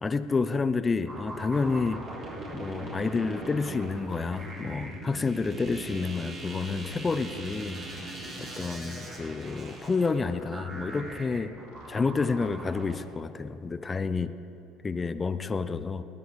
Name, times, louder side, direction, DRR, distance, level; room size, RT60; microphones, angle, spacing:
voice 1, 0.0-2.0 2.5-7.8 8.4-11.5 11.9-14.3 14.8-16.0, left 4 dB, 25° left, 12 dB, 0.6 m, -29 dB
sound 1, 1.1-13.0, right 2 dB, 40° right, 3.9 m, -40 dB
sound 2, 5.5-12.5, left 7 dB, 70° left, 1.1 m, -54 dB
20.0 x 9.1 x 5.2 m, 2.8 s
hypercardioid pair, 70°, 0 cm